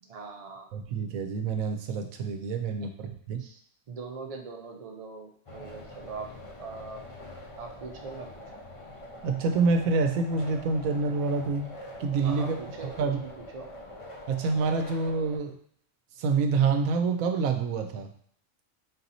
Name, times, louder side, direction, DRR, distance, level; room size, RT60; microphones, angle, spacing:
voice 1, 0.0-0.7 2.8-2.9 3.4-3.6 3.9-7.0 7.6-8.3 12.2-13.7, right 4 dB, 45° right, 3 dB, 0.5 m, -41 dB
voice 2, 0.7-3.4 9.2-11.7 12.0-12.6 13.0-13.2 14.3-15.6 16.2-18.1, right 4 dB, 90° right, 6 dB, 1.0 m, -27 dB
sound 1, 5.5-15.4, left 1 dB, 35° left, 0.5 m, -44 dB
4.0 x 2.8 x 4.0 m, 0.63 s
omnidirectional pair, 1.4 m